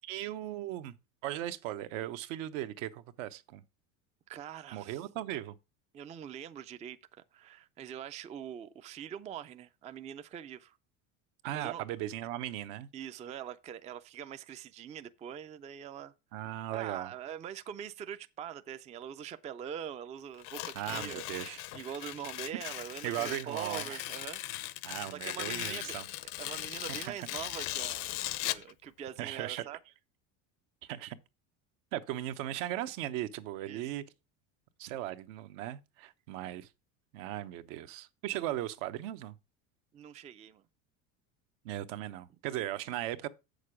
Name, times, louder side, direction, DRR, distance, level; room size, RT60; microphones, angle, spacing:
voice 1, 0.0-0.9 1.2-3.6 4.7-5.6 11.4-12.9 16.3-17.1 20.7-21.6 23.0-24.0 24.8-26.1 26.9-27.3 29.2-29.7 30.8-31.2 31.9-34.0 34.8-36.7 37.1-39.4 41.6-43.3, right 13 dB, 75° right, 0.9 m, -37 dB
voice 2, 4.3-5.0 5.9-10.8 11.5-11.8 12.9-16.1 16.7-24.7 25.1-25.9 26.4-29.8 33.7-33.9 39.9-40.6, right 9 dB, 20° right, 0.3 m, -43 dB
Tearing, 20.4-28.7, left 17 dB, 65° left, 0.7 m, -39 dB
7.7 x 6.6 x 4.8 m
supercardioid pair, 125°, 40 cm